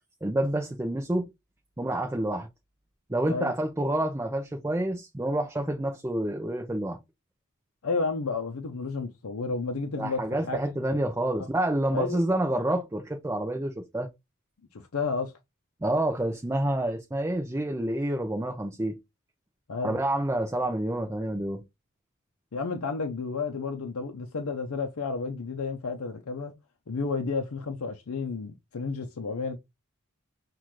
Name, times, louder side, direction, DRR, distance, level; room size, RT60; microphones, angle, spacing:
voice 1, 0.2-1.3 1.8-2.5 3.1-7.0 10.0-14.1 15.8-19.0 19.8-21.6, right 1 dB, 10° right, 0.5 m, -28 dB
voice 2, 7.8-10.6 11.4-11.5 11.9-12.2 14.7-15.3 19.7-20.0 22.5-26.6 26.9-29.6, left 4 dB, 80° left, 0.6 m, -31 dB
5.8 x 2.4 x 3.1 m
head